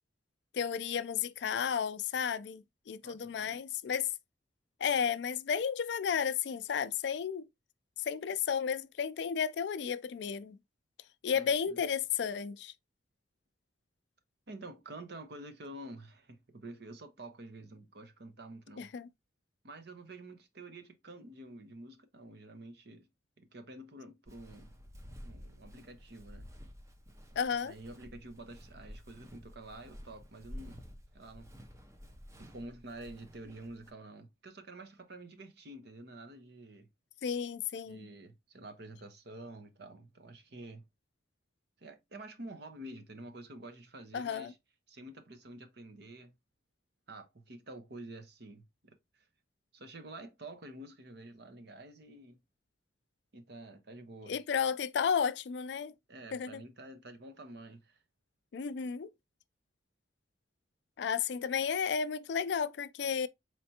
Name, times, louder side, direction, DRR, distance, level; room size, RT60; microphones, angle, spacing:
voice 1, 0.5-4.1 4.8-7.5 8.1-10.6 11.2-12.7 18.8-19.1 27.4-27.7 37.2-38.1 44.1-44.5 54.3-55.9 56.3-56.6 58.5-59.1 61.0-63.3, left 7 dB, 65° left, 0.3 m, -33 dB
voice 2, 3.0-3.6 11.3-11.8 14.5-18.9 19.6-23.1 23.4-24.7 25.2-26.5 27.6-31.5 32.4-36.9 37.8-40.8 41.8-44.6 44.9-46.3 47.1-49.0 49.7-52.4 53.3-54.4 56.1-58.0, right 2 dB, 60° right, 0.8 m, -49 dB
Walk footsteps, 24.3-33.9, equal, 15° right, 0.5 m, -51 dB
4.4 x 3.3 x 2.7 m
head